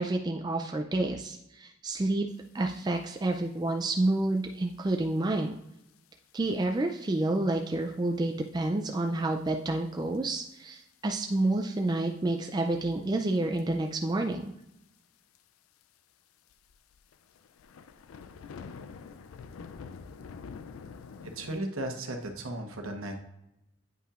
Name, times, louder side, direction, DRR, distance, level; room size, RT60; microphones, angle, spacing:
voice 1, 0.0-2.3 2.5-5.5 6.3-14.5, right 2 dB, 20° right, 3 dB, 0.3 m, -29 dB
sound 1, 3.0-3.1 3.3-3.7 4.4-4.5 5.2-5.3 5.9-6.0 6.3-6.4 6.6-6.7 7.8-8.1 8.5-8.6 9.5-9.6 10.1-10.6 10.9-11.1 11.6-12.3 13.4-13.6 13.9-14.0 14.3-14.4 14.6-14.7 15.3-15.4 15.8-15.9 16.5-21.6, left 5 dB, 85° left, 0.4 m, -46 dB
voice 2, 21.3-23.2, right 1 dB, 85° right, 4 dB, 1.1 m, -35 dB
9.1 x 5.5 x 2.4 m, 0.88 s
head